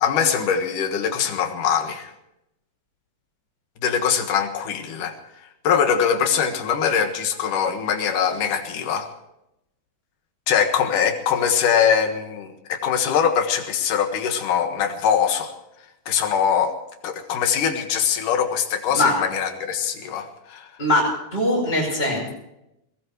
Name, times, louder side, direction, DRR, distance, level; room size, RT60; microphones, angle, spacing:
voice 1, 0.0-2.1 3.8-5.2 5.6-9.1 10.5-15.5 16.1-16.7 17.0-20.7, left 7 dB, 80° left, 6 dB, 3.1 m, -22 dB
voice 2, 20.8-22.3, left 1 dB, 15° left, -6 dB, 6.9 m, -21 dB
21.5 x 18.5 x 3.1 m, 0.83 s
omnidirectional pair, 3.6 m